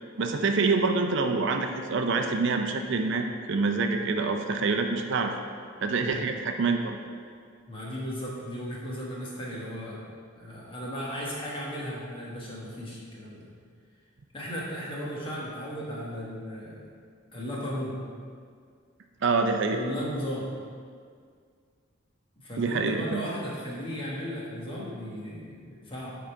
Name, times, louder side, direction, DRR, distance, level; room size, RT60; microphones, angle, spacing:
voice 1, 0.2-5.3 5.8-7.0 19.2-19.8 22.6-23.2, right 4 dB, 60° right, 5 dB, 0.5 m, -26 dB
voice 2, 7.7-10.0 10.3-13.5 14.3-16.8 17.3-18.0 19.7-20.5 22.4-26.2, equal, 25° left, -5 dB, 1.4 m, -36 dB
9.4 x 3.8 x 4.5 m, 2.1 s
head